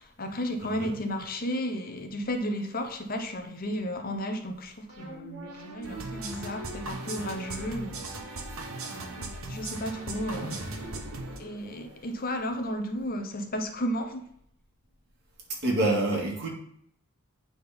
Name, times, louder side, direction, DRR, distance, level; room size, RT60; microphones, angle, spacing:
voice 1, 0.0-8.0 8.8-10.8 11.4-14.2, equal, 40° left, 6 dB, 0.9 m, -33 dB
voice 2, 0.6-0.9 8.9-9.0 15.6-16.5, right 2 dB, 50° right, -2 dB, 2.3 m, -27 dB
sound 1, 4.9-12.4, right 1 dB, 90° right, 1.6 m, -44 dB
sound 2, 5.8-11.4, right 2 dB, 70° right, 1.3 m, -38 dB
8.8 x 3.9 x 5.2 m, 0.69 s
head